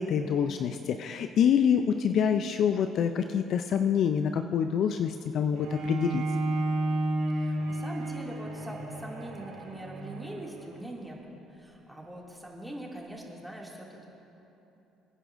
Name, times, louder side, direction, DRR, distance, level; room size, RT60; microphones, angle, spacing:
voice 1, 0.0-6.2, left 8 dB, 60° left, 8 dB, 0.4 m, -26 dB
Bowed string instrument, 5.5-10.8, right 2 dB, 90° right, 3.3 m, -32 dB
voice 2, 7.3-14.1, right 1 dB, 5° right, -3 dB, 2.3 m, -42 dB
24.0 x 10.0 x 2.6 m, 3.0 s
supercardioid pair, 70°, 0 cm